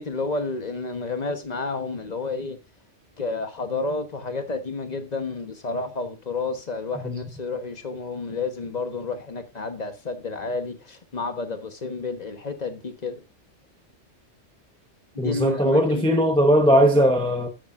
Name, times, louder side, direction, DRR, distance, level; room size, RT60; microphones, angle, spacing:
voice 1, 0.0-2.6 3.2-13.2 15.2-16.2 16.9-17.1, left 3 dB, 35° left, 1.2 m, -30 dB
voice 2, 15.2-17.5, equal, 5° left, 0.9 m, -19 dB
9.3 x 8.8 x 2.5 m
omnidirectional pair, 1.2 m